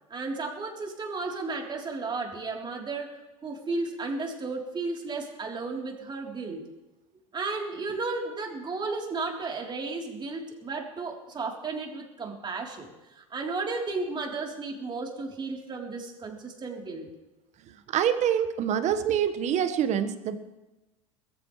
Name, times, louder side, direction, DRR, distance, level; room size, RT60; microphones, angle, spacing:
voice 1, 0.1-3.2 3.4-6.7 7.3-12.9 13.2-17.1, right 3 dB, 25° right, 0 dB, 3.6 m, -34 dB
voice 2, 17.9-20.3, right 9 dB, 45° right, 10 dB, 1.4 m, -25 dB
21.0 x 14.5 x 3.3 m, 1.1 s
hypercardioid pair, 80°, 17 cm